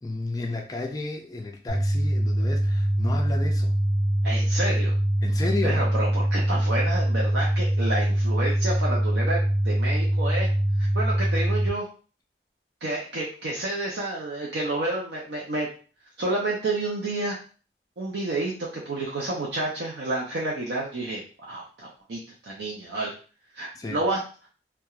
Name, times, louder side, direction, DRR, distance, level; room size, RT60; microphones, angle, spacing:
voice 1, 0.0-3.7 5.2-5.8 23.8-24.0, left 2 dB, 20° left, 2 dB, 0.3 m, -32 dB
sound 1, 1.7-11.7, right 1 dB, 30° right, 0.6 m, -23 dB
voice 2, 4.2-4.9 5.6-10.5 10.8-11.9 12.8-15.7 16.2-17.4 18.0-23.1 23.5-24.2, right 2 dB, 75° right, -3 dB, 0.5 m, -30 dB
2.8 x 2.2 x 2.3 m, 0.38 s
head